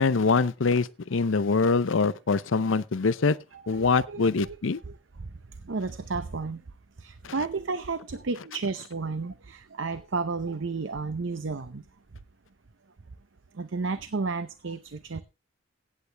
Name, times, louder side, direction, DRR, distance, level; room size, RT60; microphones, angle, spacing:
voice 1, 0.0-3.4 3.7-4.8 7.2-7.3, left 4 dB, 70° left, 0.6 m, -24 dB
voice 2, 3.5-4.6 5.7-6.6 7.0-11.8 13.6-15.2, right 4 dB, 65° right, 0.7 m, -32 dB
16.5 x 8.5 x 3.4 m
head